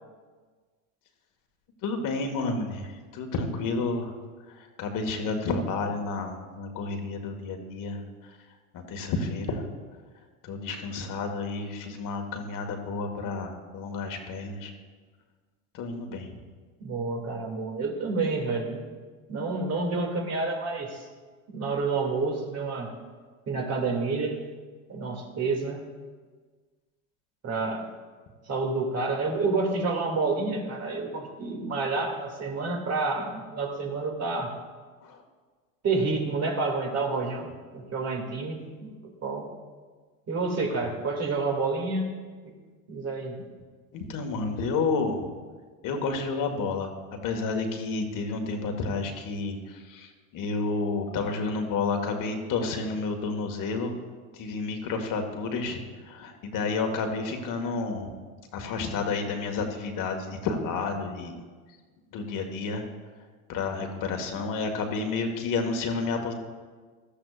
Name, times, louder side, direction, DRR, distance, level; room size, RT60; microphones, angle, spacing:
voice 1, 1.8-4.1 4.5-8.4 8.7-9.6 10.4-14.7 15.7-16.3 35.0-35.2 43.9-45.2 45.8-46.9 47.2-53.9 54.3-58.1 58.5-61.4 62.1-62.8 63.5-66.3, left 4 dB, 50° left, 4 dB, 1.7 m, -30 dB
voice 2, 16.8-18.9 19.3-21.1 21.5-22.9 23.5-24.4 24.9-25.8 27.4-27.9 28.4-34.5 35.8-38.9 39.2-39.5 40.3-42.1 42.4-42.5 42.9-43.4, right 3 dB, 40° right, 1 dB, 2.5 m, -29 dB
17.0 x 13.0 x 2.5 m, 1.5 s
hypercardioid pair, 80°, 41 cm